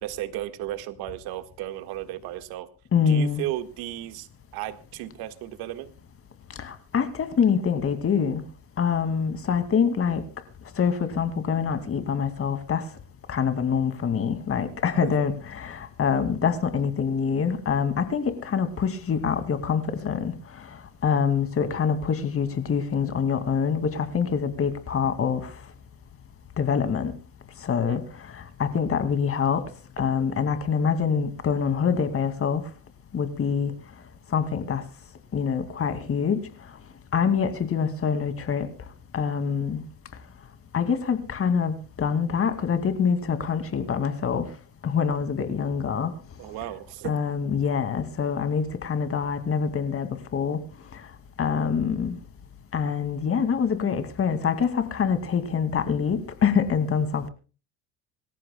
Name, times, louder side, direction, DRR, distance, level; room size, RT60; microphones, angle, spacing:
voice 1, 0.0-2.7 3.1-4.3 4.5-5.9 15.0-15.1 27.9-28.0 46.4-47.2, right 14 dB, 75° right, 1.8 m, -34 dB
voice 2, 2.9-3.4 6.6-8.4 8.8-10.2 10.8-12.8 13.3-20.3 21.0-25.5 26.6-27.1 27.6-28.0 28.3-29.6 30.0-32.6 33.1-33.7 34.3-34.8 35.3-36.4 37.1-38.7 39.1-39.8 40.7-44.5 44.8-46.1 47.0-50.6 51.4-52.2 52.7-57.3, left 6 dB, 35° left, 2.4 m, -25 dB
25.5 x 14.5 x 2.3 m
supercardioid pair, 100°, 38 cm